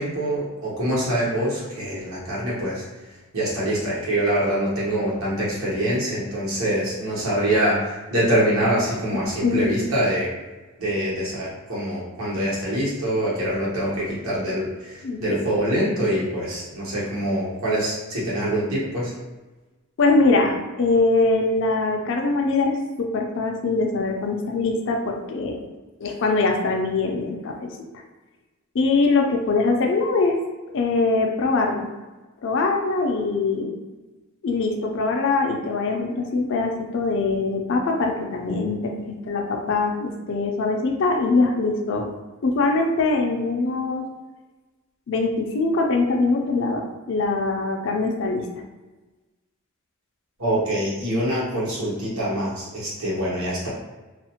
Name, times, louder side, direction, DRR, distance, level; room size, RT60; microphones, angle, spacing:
voice 1, 0.0-2.8 3.3-10.3 10.8-19.1 50.4-53.7, right 1 dB, 70° right, -6 dB, 1.0 m, -24 dB
voice 2, 9.4-9.7 15.0-15.2 20.0-25.6 26.0-27.7 28.7-30.4 30.7-31.9 32.4-33.7 34.4-42.1 42.4-44.0 45.1-46.8 47.1-48.5, left 3 dB, 55° left, 2 dB, 0.4 m, -22 dB
2.4 x 2.0 x 2.8 m, 1.2 s
head